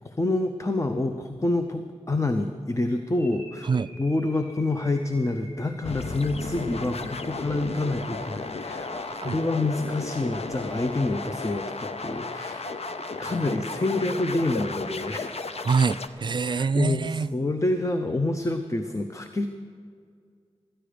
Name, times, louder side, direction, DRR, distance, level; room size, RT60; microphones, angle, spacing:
voice 1, 0.2-3.7 3.9-12.7 13.2-15.3 16.5-19.5, left 2 dB, 25° left, 7 dB, 0.7 m, -27 dB
sound 1, 3.1-15.1, equal, 85° left, 3.2 m, -48 dB
sound 2, 5.8-16.1, left 3 dB, 60° left, 0.7 m, -34 dB
voice 2, 15.6-17.3, right 5 dB, 40° right, 16 dB, 0.3 m, -25 dB
14.5 x 10.0 x 5.1 m, 2.2 s
cardioid pair, 45°, 12 cm